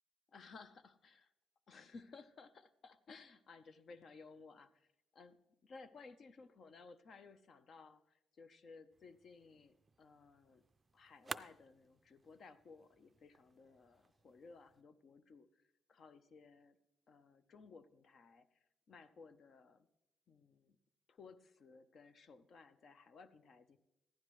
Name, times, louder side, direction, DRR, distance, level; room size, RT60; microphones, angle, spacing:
voice 1, 0.3-1.3 1.7-4.9 5.1-5.4 5.6-10.7 10.9-15.6 15.9-16.8 17.1-19.9 20.3-20.8 21.1-23.8, left 4 dB, 55° left, 12 dB, 0.6 m, -58 dB
sound 1, 8.9-14.8, right 4 dB, 25° right, 0.4 m, -54 dB
15.5 x 11.5 x 3.1 m, 0.85 s
cardioid pair, 110°, 0 cm